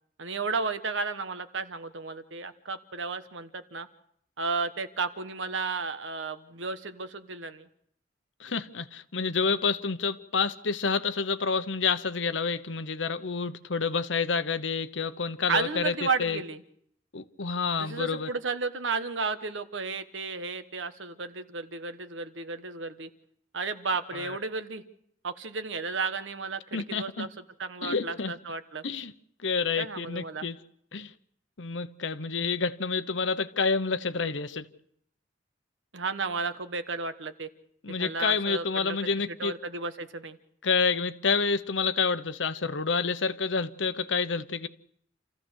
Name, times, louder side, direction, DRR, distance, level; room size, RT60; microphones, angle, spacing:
voice 1, 0.2-3.9 4.4-7.7 15.5-16.6 17.8-23.1 23.5-24.8 25.2-27.3 27.6-28.8 29.8-30.5 35.9-37.5 38.0-39.0 39.3-40.4, right 4 dB, 90° right, 1.3 m, -33 dB
voice 2, 8.4-16.4 17.1-18.3 24.1-24.4 26.7-27.3 27.8-28.3 28.8-29.1 29.4-30.6 30.9-31.1 31.6-34.7 37.8-39.5 40.6-44.7, left 5 dB, 80° left, 1.0 m, -28 dB
28.0 x 15.0 x 6.4 m
head